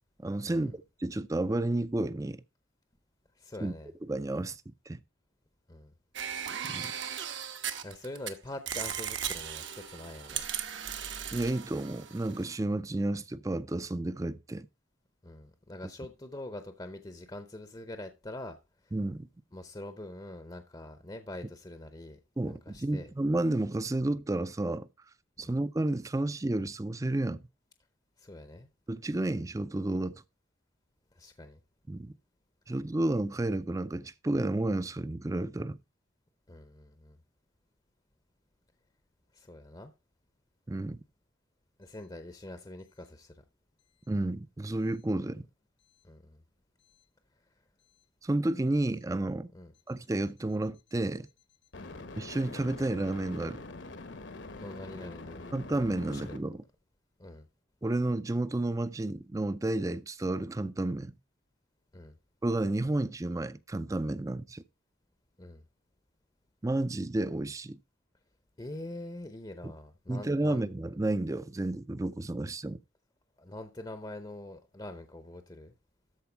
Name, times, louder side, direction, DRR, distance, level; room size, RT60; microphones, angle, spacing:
voice 1, 0.2-2.4 3.6-3.7 4.1-5.0 6.7-6.9 11.3-14.7 18.9-19.3 22.4-24.9 25.4-27.5 28.9-30.2 31.9-32.1 32.7-35.8 40.7-41.0 44.1-45.5 48.2-49.5 49.9-51.3 52.2-53.6 55.5-56.6 57.8-61.2 62.4-64.6 66.6-67.8 69.6-69.7 70.1-72.8, right 2 dB, 15° right, 0.4 m, -31 dB
voice 2, 3.4-3.9 5.7-5.9 7.8-10.4 15.2-18.6 19.5-22.2 22.5-23.1 25.4-25.6 28.2-28.7 31.2-31.6 36.5-37.2 39.3-39.9 41.8-43.3 46.0-46.4 49.5-49.7 51.8-52.0 54.5-55.5 56.0-56.2 57.2-57.4 61.9-62.1 65.4-65.6 68.6-70.6 73.4-75.7, left 1 dB, 20° left, 0.6 m, -44 dB
sound 1, 6.1-8.3 8.7-12.5, right 9 dB, 70° right, 1.2 m, -37 dB
sound 2, 46.9-47.0 51.7-56.4, left 3 dB, 65° left, 1.0 m, -44 dB
13.0 x 4.6 x 4.5 m
head